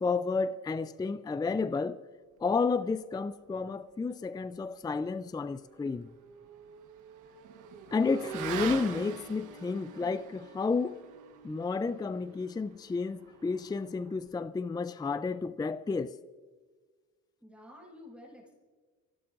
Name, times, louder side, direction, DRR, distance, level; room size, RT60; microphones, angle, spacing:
voice 1, 0.0-2.0 2.4-6.1 7.9-11.0 11.4-16.2, left 4 dB, 15° left, 0.4 m, -31 dB
Motorcycle / Accelerating revving vroom, 5.5-14.3, right 7 dB, 85° right, 1.3 m, -44 dB
voice 2, 17.4-18.5, left 1 dB, 5° right, 5.7 m, -51 dB
25.5 x 16.5 x 2.5 m
cardioid pair, 90°, 30 cm